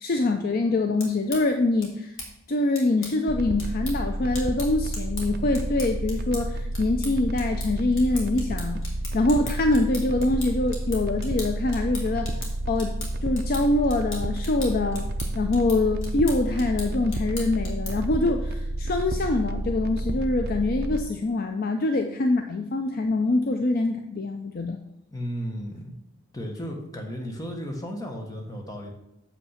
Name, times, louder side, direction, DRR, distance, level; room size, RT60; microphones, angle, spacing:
voice 1, 0.0-2.1 2.5-8.8 9.1-12.4 12.7-12.9 13.2-15.1 15.3-24.8, left 2 dB, 40° left, 6 dB, 0.5 m, -24 dB
sound 1, 0.8-18.2, left 2 dB, 60° left, 2.1 m, -41 dB
sound 2, 3.3-21.0, right 1 dB, 45° right, 0.6 m, -30 dB
voice 2, 25.1-25.9 26.3-28.9, equal, 15° left, 1 dB, 1.2 m, -34 dB
7.0 x 5.6 x 5.7 m, 0.82 s
head